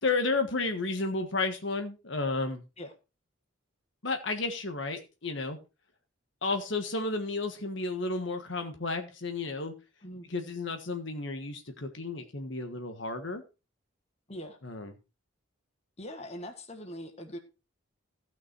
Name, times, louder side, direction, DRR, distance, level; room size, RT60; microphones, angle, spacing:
voice 1, 0.0-2.6 4.0-5.6 6.4-9.7 10.3-13.4 14.6-14.9, left 3 dB, 60° left, 1.5 m, -32 dB
voice 2, 16.0-17.4, equal, 30° left, 1.6 m, -42 dB
15.5 x 6.1 x 4.6 m
head